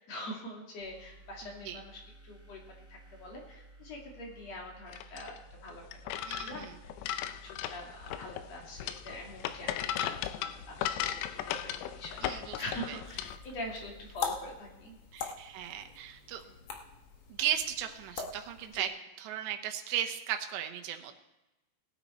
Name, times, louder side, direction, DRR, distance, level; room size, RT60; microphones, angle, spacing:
voice 1, 0.0-2.6 2.9-5.8 6.3-15.0 16.4-16.6 18.7-18.9, left 1 dB, 45° left, 0 dB, 2.8 m, -44 dB
sound 1, 0.8-14.5, right 2 dB, 40° right, 5.2 m, -55 dB
sound 2, 4.9-13.4, left 11 dB, 80° left, 2.7 m, -37 dB
voice 2, 6.3-6.7 12.2-12.6 12.9-13.0 15.1-16.4 17.3-18.9 19.2-21.2, right 10 dB, 85° right, 6 dB, 3.2 m, -36 dB
sound 3, 13.0-18.9, left 6 dB, 65° left, 1.7 m, -42 dB
19.5 x 9.2 x 4.3 m, 1.0 s
omnidirectional pair, 4.9 m